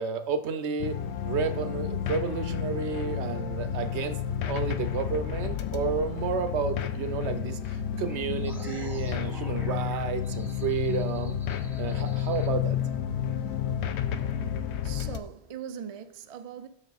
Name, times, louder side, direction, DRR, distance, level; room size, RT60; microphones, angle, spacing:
voice 1, 0.0-4.2 4.5-11.4 11.8-12.8, right 6 dB, 85° right, 1.0 m, -31 dB
sound 1, 0.8-15.2, left 9 dB, 90° left, 0.9 m, -31 dB
sound 2, 1.5-14.4, left 8 dB, 55° left, 0.5 m, -49 dB
sound 3, 8.1-12.5, equal, ahead, 1.6 m, -48 dB
voice 2, 13.7-16.7, right 8 dB, 50° right, 0.4 m, -42 dB
7.2 x 6.1 x 4.0 m
omnidirectional pair, 1.1 m